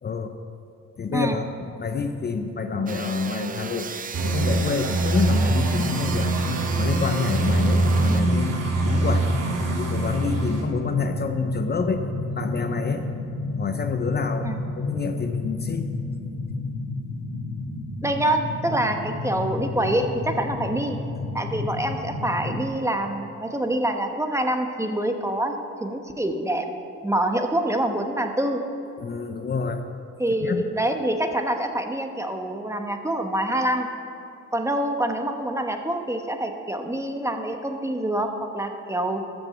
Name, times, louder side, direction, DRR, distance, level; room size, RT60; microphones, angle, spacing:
voice 1, 0.0-0.3 1.0-3.9 4.2-6.3 6.8-8.5 8.8-9.3 9.7-12.1 12.4-13.0 13.6-15.9 29.0-29.8 30.4-30.6, left 4 dB, 35° left, 6 dB, 0.7 m, -27 dB
sound 1, 2.9-8.2, right 6 dB, 30° right, 0.5 m, -35 dB
sound 2, 4.1-10.6, right 2 dB, 55° right, 2.3 m, -24 dB
sound 3, 5.1-22.7, left 2 dB, 55° left, 2.2 m, -31 dB
voice 2, 18.0-21.0 21.3-26.7 27.0-28.6 30.2-33.9 34.5-39.2, right 1 dB, 10° right, 5 dB, 1.0 m, -26 dB
13.5 x 6.2 x 7.5 m, 2.6 s
cardioid pair, 90°, 30 cm